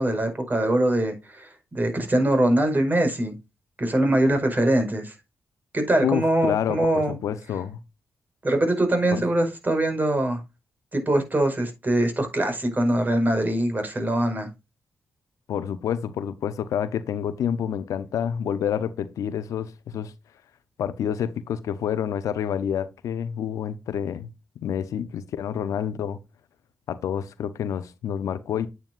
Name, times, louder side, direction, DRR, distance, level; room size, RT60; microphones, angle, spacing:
voice 1, 0.0-3.4 3.8-5.1 5.7-7.2 8.4-10.4 10.9-14.5, right 1 dB, 35° right, 5.1 m, -23 dB
voice 2, 6.0-7.8 9.1-9.2 15.5-20.1 20.8-24.3 24.6-26.2 26.9-28.7, left 9 dB, 80° left, 0.8 m, -28 dB
9.5 x 9.0 x 2.6 m
supercardioid pair, 45°, 6 cm